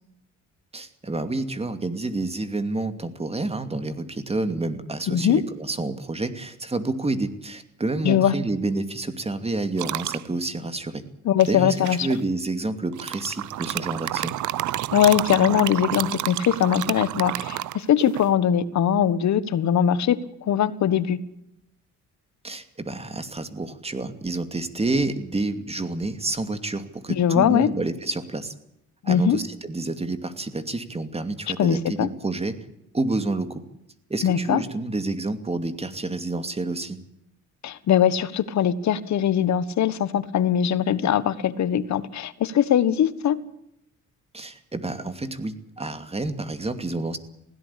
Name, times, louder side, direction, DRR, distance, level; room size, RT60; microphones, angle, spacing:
voice 1, 0.7-11.0 11.5-11.8 12.0-14.3 22.4-28.5 29.0-32.6 32.9-33.6 34.1-37.0 44.3-47.2, right 2 dB, 20° right, 10 dB, 2.6 m, -29 dB
voice 2, 5.1-5.4 8.0-8.3 11.2-12.1 14.9-20.2 20.4-21.2 27.1-27.7 29.0-29.4 31.6-32.1 34.2-34.6 37.6-43.4, left 9 dB, 65° left, 15 dB, 1.5 m, -21 dB
sound 1, 9.8-10.2 11.4-12.2 12.9-18.3, right 14 dB, 75° right, 0.7 m, -30 dB
20.5 x 16.5 x 8.6 m, 0.79 s
cardioid pair, 90°, 30 cm